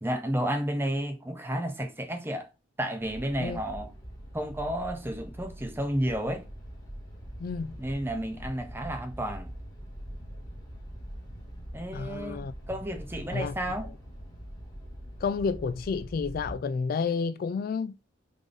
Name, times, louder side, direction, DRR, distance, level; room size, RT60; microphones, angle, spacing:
voice 1, 0.0-2.5 2.8-3.9 4.3-6.4 7.8-9.5 11.7-13.9, equal, 10° right, 0.7 m, -32 dB
sound 1, 3.0-16.6, equal, 20° left, 1.7 m, -43 dB
voice 2, 7.4-7.7 11.9-12.5 13.3-13.5 15.2-18.2, left 5 dB, 50° left, 0.3 m, -30 dB
3.8 x 3.8 x 3.3 m
head